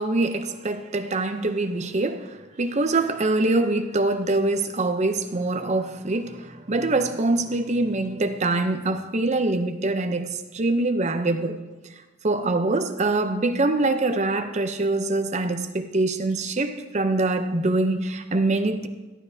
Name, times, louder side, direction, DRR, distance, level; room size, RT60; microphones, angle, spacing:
voice 1, 0.0-11.6 12.2-18.9, right 2 dB, 30° right, 8 dB, 0.6 m, -24 dB
12.0 x 11.5 x 2.7 m, 1.2 s
head